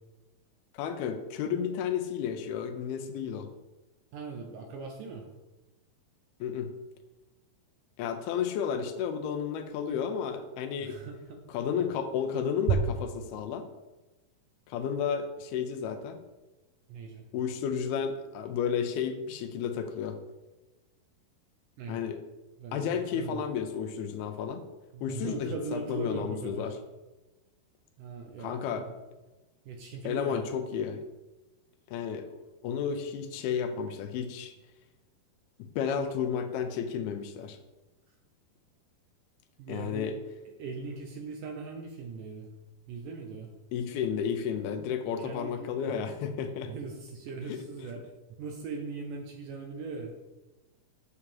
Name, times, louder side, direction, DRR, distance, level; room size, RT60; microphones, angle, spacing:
voice 1, 0.7-3.5 6.4-6.7 8.0-11.0 11.5-13.7 14.7-16.2 17.3-20.2 21.9-22.2 22.7-24.7 25.0-26.8 28.4-28.9 30.0-31.0 31.9-32.3 32.6-34.5 35.6-37.6 39.7-40.2 43.7-46.7 47.5-47.6, left 7 dB, 85° left, 8 dB, 2.5 m, -32 dB
voice 2, 4.1-5.3 10.8-11.4 16.9-17.3 21.8-22.0 22.6-23.4 24.9-26.7 28.0-28.8 29.7-30.4 39.6-40.1 40.5-42.5 42.9-43.5 45.2-46.0 46.7-48.0 48.4-50.1, right 4 dB, 75° right, 2 dB, 2.1 m, -40 dB
8.3 x 4.9 x 7.2 m, 1.1 s
omnidirectional pair, 4.7 m